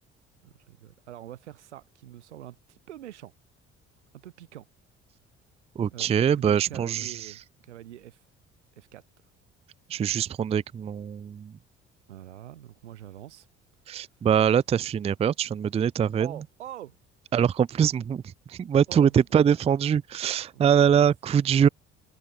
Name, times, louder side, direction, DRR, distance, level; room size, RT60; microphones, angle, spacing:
voice 1, 0.4-3.3 4.1-4.7 5.9-8.2 8.8-9.0 12.1-13.5 16.2-17.0 18.9-19.4, right 12 dB, 75° right, 1.0 m, -44 dB
voice 2, 5.8-7.1 9.9-11.5 13.9-16.3 17.3-18.2 18.5-21.7, right 8 dB, 20° right, 0.4 m, -23 dB
figure-of-eight pair, 50°, 34 cm